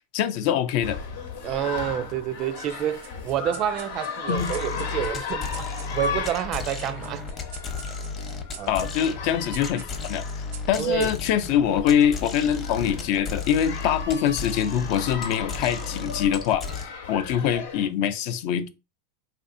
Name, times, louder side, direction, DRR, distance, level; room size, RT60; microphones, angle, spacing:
voice 1, 0.1-1.0 4.3-4.5 8.7-10.2 10.7-16.7 17.1-18.7, left 9 dB, 60° left, 0.5 m, -24 dB
sound 1, 0.8-17.9, left 6 dB, 75° left, 0.9 m, -36 dB
voice 2, 1.4-7.3 8.6-8.7 10.8-11.1, right 10 dB, 45° right, 0.3 m, -28 dB
sound 2, 3.0-11.9, right 8 dB, 75° right, 0.7 m, -48 dB
sound 3, 4.4-16.8, left 4 dB, 25° left, 0.8 m, -34 dB
3.3 x 2.6 x 2.5 m
supercardioid pair, 120°, 0 cm